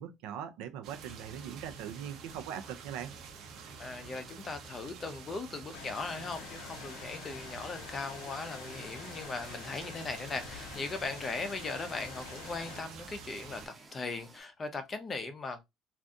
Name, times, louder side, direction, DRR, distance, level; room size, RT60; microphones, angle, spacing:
voice 1, 0.0-3.1, right 9 dB, 85° right, 0.5 m, -41 dB
sound 1, 0.8-13.7, right 5 dB, 55° right, 0.7 m, -48 dB
voice 2, 3.8-15.6, left 3 dB, 20° left, 0.5 m, -39 dB
sound 2, 5.7-12.8, left 9 dB, 75° left, 0.4 m, -47 dB
sound 3, 5.9-14.4, right 2 dB, 15° right, 0.8 m, -55 dB
2.6 x 2.4 x 3.6 m
cardioid pair, 175°, 0 cm